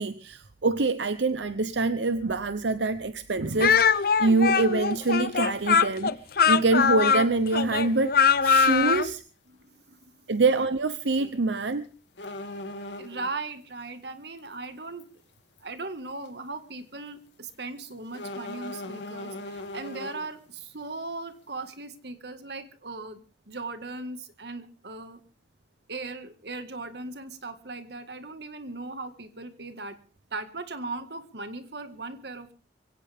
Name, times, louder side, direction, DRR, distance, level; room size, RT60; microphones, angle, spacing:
voice 1, 0.0-6.2 6.5-9.2 10.3-11.8, right 3 dB, 85° right, 13 dB, 0.8 m, -25 dB
Speech, 3.6-9.1, left 6 dB, 55° left, 0.7 m, -22 dB
sound 1, 6.5-6.6 8.2-8.4 8.7-8.8 9.1-9.2 11.1-11.3 11.6-11.7 12.2-13.4 14.4-14.5 15.0-15.1 15.6-15.8 16.3-16.4 18.1-20.3, left 1 dB, 90° left, 2.4 m, -39 dB
voice 2, 9.5-10.1 13.0-15.1 15.6-25.2 25.9-30.0 30.3-32.5, right 3 dB, 65° right, 10 dB, 1.9 m, -38 dB
23.0 x 17.0 x 3.6 m, 0.38 s
head